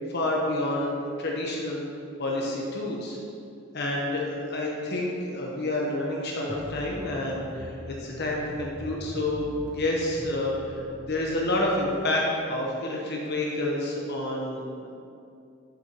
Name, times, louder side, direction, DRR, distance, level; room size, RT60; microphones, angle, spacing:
voice 1, 0.1-1.8 2.2-3.2 3.7-9.5 9.7-14.9, left 1 dB, 55° left, -2 dB, 1.0 m, -29 dB
sound 1, 6.5-11.8, equal, 5° left, 0.9 m, -42 dB
9.6 x 6.6 x 3.0 m, 2.5 s
head